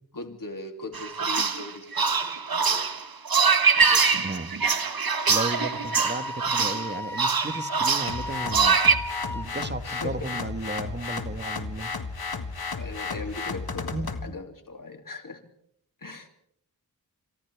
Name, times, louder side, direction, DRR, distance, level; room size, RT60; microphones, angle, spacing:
voice 1, 0.1-2.9 3.7-4.1 9.8-10.3 12.8-15.4 16.0-16.3, left 2 dB, 60° left, 4 dB, 2.9 m, -39 dB
sound 1, 0.9-9.0, right 5 dB, 70° right, 1.4 m, -23 dB
voice 2, 4.2-4.5 5.3-8.8 9.3-11.9 13.9-14.4, right 2 dB, 30° right, 10 dB, 1.5 m, -34 dB
Wind instrument woodwind instrument, 5.1-9.5, left 1 dB, 5° left, 0.8 m, -36 dB
sound 2, 8.1-14.3, left 4 dB, 75° left, 1.7 m, -33 dB
29.5 x 26.5 x 3.5 m, 0.70 s
wide cardioid pair, 70°, 37 cm